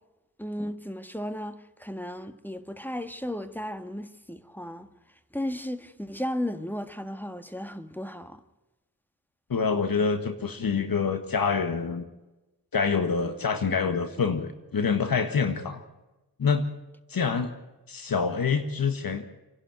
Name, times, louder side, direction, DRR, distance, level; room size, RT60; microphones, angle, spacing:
voice 1, 0.4-4.9 5.3-8.4, left 1 dB, 5° left, 1.8 m, -35 dB
voice 2, 9.5-12.0 12.7-15.8 16.4-16.6 17.1-17.5 17.9-19.2, left 5 dB, 70° left, 1.6 m, -26 dB
28.0 x 11.5 x 9.1 m
cardioid pair, 45°, 36 cm